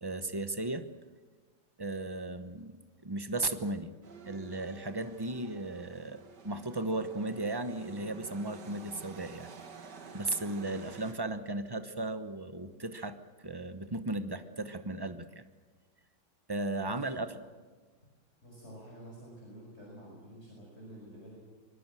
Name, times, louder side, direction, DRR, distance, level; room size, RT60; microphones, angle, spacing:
voice 1, 0.0-0.9 1.8-3.9 4.3-9.5 10.1-15.4 16.5-17.3, right 2 dB, 25° right, 10 dB, 0.5 m, -36 dB
sound 1, 4.0-11.1, right 5 dB, 55° right, 2.4 m, -50 dB
voice 2, 16.8-17.2 18.4-21.4, right 1 dB, 30° left, -3 dB, 6.5 m, -49 dB
25.5 x 21.0 x 7.7 m, 1.4 s
omnidirectional pair, 2.2 m